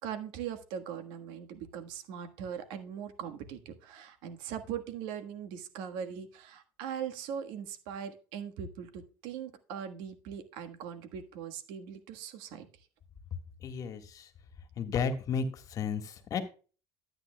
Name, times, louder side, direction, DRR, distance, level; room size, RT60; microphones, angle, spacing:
voice 1, 0.0-12.7, right 8 dB, 85° right, 8 dB, 1.4 m, -40 dB
voice 2, 13.6-14.2 14.8-15.5 15.7-16.4, left 6 dB, 50° left, 8 dB, 1.6 m, -32 dB
13.0 x 8.9 x 2.2 m, 0.36 s
cardioid pair, 115°, 8 cm